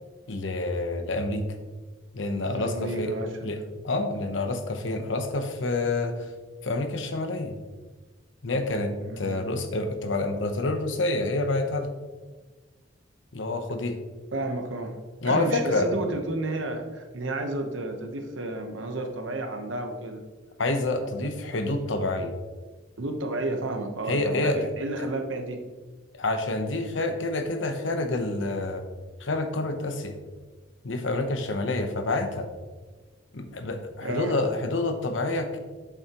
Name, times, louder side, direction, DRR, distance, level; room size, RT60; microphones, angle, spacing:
voice 1, 0.3-1.4 2.1-3.1 3.4-3.6 3.8-6.3 6.6-7.5 8.4-11.9 13.3-14.0 15.2-15.9 20.6-22.3 24.1-24.7 25.0-25.1 26.1-28.8 29.2-30.2 30.8-32.5 33.3-35.6, left 2 dB, 70° left, 7 dB, 0.9 m, -28 dB
voice 2, 2.5-3.5 9.0-9.4 14.3-15.0 15.2-20.2 21.0-21.2 23.0-25.6 34.0-34.4, right 2 dB, 80° right, 5 dB, 1.1 m, -32 dB
8.8 x 7.0 x 3.0 m, 1.3 s
head